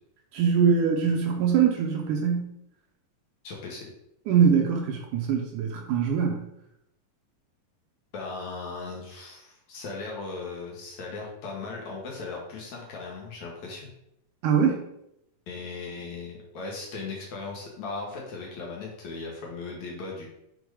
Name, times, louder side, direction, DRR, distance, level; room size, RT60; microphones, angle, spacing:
voice 1, 0.3-2.5 4.3-6.5 14.4-14.8, right 6 dB, 75° right, 2 dB, 2.1 m, -23 dB
voice 2, 3.4-3.9 8.1-13.8 15.5-20.3, left 3 dB, 60° left, -1 dB, 2.3 m, -37 dB
6.7 x 4.3 x 4.8 m, 0.80 s
omnidirectional pair, 4.2 m